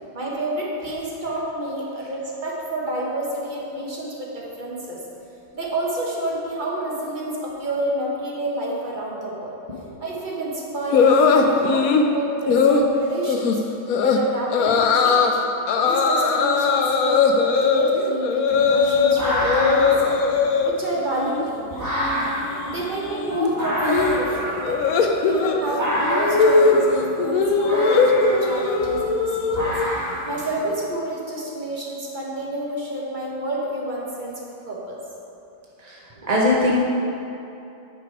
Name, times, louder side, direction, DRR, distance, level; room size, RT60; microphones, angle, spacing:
voice 1, 0.1-5.0 5.5-9.6 10.0-13.6 14.0-15.4 15.8-20.2 20.6-21.9 22.6-24.8 25.3-29.7 30.2-35.0, right 1 dB, 30° right, -4 dB, 1.1 m, -28 dB
sound 1, 10.9-12.1 12.5-12.8 13.3-13.6 13.9-14.2 14.5-15.3 15.7-19.1 19.4-20.7 21.0-21.5 21.7-29.9, left 5 dB, 85° left, 0.7 m, -20 dB
sound 2, 18.5-30.9, equal, 10° right, 1.3 m, -29 dB
voice 2, 35.8-36.8, left 2 dB, 55° right, -4 dB, 0.4 m, -21 dB
9.5 x 5.3 x 4.7 m, 2.8 s
omnidirectional pair, 2.2 m